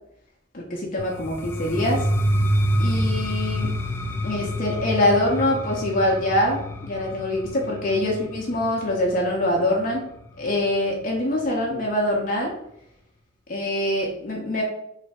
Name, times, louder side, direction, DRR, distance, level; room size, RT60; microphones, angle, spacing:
voice 1, 0.5-2.1 2.8-3.8 4.2-10.0 10.4-12.5 13.5-14.6, left 1 dB, 45° left, -1 dB, 0.7 m, -24 dB
sound 1, 1.0-10.8, equal, 10° left, 0.3 m, -27 dB
3.3 x 2.8 x 4.1 m, 0.76 s
head